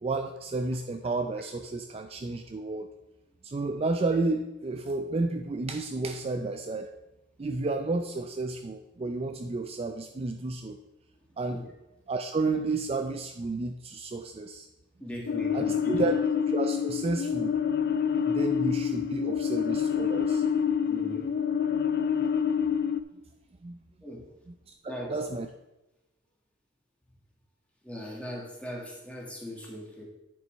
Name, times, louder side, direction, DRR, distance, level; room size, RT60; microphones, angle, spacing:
voice 1, 0.0-2.9 3.4-6.9 7.4-10.8 11.4-11.6 12.1-14.7 15.5-16.2 16.5-17.5 18.3-20.4 23.6-23.8 24.5-24.6 24.8-25.5, right 3 dB, 30° right, 6 dB, 0.4 m, -31 dB
voice 2, 15.0-16.0 20.9-21.2 24.0-24.2 24.9-25.3 27.8-30.0, equal, 5° left, -2 dB, 1.8 m, -39 dB
sound 1, 15.3-23.0, left 7 dB, 55° left, 0.4 m, -27 dB
9.6 x 5.4 x 4.4 m, 0.98 s
head